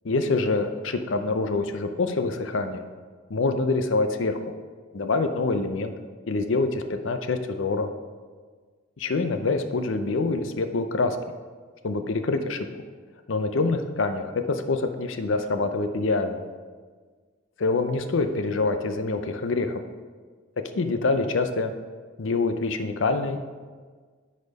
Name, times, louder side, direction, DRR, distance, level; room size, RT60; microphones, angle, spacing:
voice 1, 0.0-2.9 3.3-4.4 4.9-5.9 6.3-7.9 9.0-11.2 11.8-12.7 13.3-16.4 17.6-19.8 20.7-21.7 22.2-23.4, left 3 dB, 70° left, 8 dB, 0.6 m, -25 dB
10.0 x 4.2 x 4.1 m, 1.5 s
head